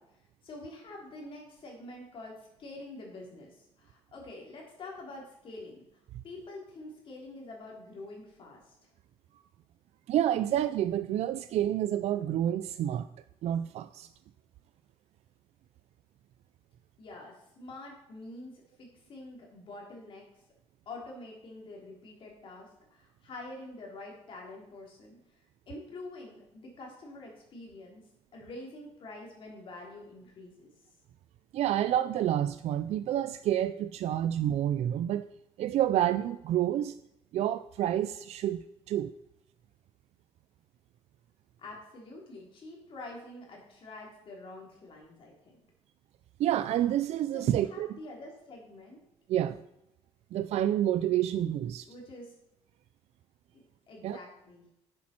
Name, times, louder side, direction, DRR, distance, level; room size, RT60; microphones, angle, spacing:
voice 1, 0.0-5.8 6.2-8.9 17.0-20.4 20.8-25.4 25.7-28.0 28.3-30.7 41.6-45.5 47.3-49.0 51.9-52.3 53.5-54.6, left 2 dB, 50° left, -1 dB, 3.3 m, -46 dB
voice 2, 10.1-13.1 13.4-14.1 31.5-35.2 35.6-37.0 37.3-39.1 46.4-47.9 49.3-49.6 50.3-51.9 54.0-54.2, right 11 dB, 65° right, 12 dB, 0.4 m, -29 dB
10.5 x 7.5 x 4.4 m, 0.84 s
cardioid pair, 155°, 12 cm